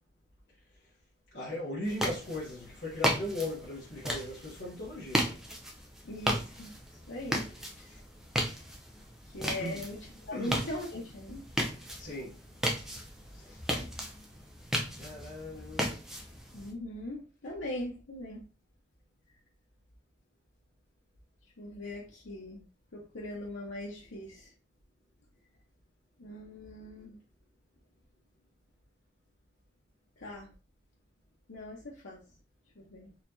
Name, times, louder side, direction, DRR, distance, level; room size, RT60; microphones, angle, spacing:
voice 1, 1.3-5.3 9.5-9.8 10.3-10.6 12.0-12.4 13.3-13.6 15.0-15.9, left 1 dB, 65° left, 1.1 m, -38 dB
sound 1, 1.8-16.7, equal, ahead, 0.5 m, -35 dB
voice 2, 6.0-6.7 7.1-7.5 7.8-8.0 9.3-10.0 10.2-11.5 16.5-18.4 21.6-22.6 22.9-24.5 26.2-27.2 30.2-30.5 31.5-32.2 32.8-33.1, left 1 dB, 90° left, 0.9 m, -40 dB
4.2 x 2.9 x 2.6 m
head